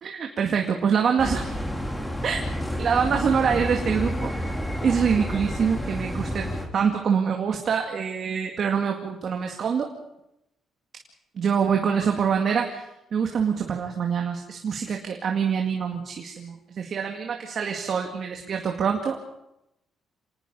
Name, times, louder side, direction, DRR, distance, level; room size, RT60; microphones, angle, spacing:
voice 1, 0.0-1.5 2.2-2.4 2.8-4.5 4.8-9.9 11.4-19.2, right 6 dB, 55° right, 2 dB, 2.2 m, -25 dB
sound 1, 1.2-6.7, equal, 10° left, 3.8 m, -30 dB
26.5 x 19.0 x 5.5 m, 0.87 s
cardioid pair, 90°, 0 cm